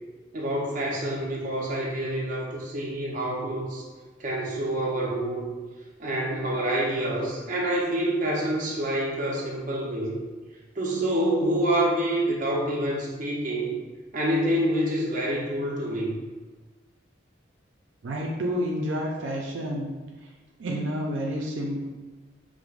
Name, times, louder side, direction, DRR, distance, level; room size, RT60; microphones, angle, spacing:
voice 1, 0.3-3.8 4.2-5.6 6.0-10.2 10.8-13.7 14.1-16.2, right 1 dB, 45° right, -4 dB, 0.7 m, -27 dB
voice 2, 18.0-19.9 20.6-21.9, equal, 85° right, -1 dB, 0.4 m, -29 dB
4.7 x 2.0 x 2.4 m, 1.3 s
head